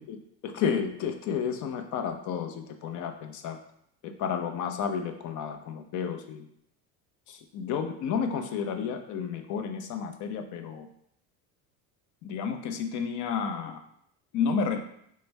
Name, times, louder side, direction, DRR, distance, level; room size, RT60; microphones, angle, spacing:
voice 1, 0.4-3.6 4.0-6.5 7.3-10.9 12.2-13.8 14.3-14.8, left 6 dB, 45° left, 6 dB, 0.5 m, -31 dB
3.2 x 2.1 x 3.2 m, 0.71 s
hypercardioid pair, 75°, 44 cm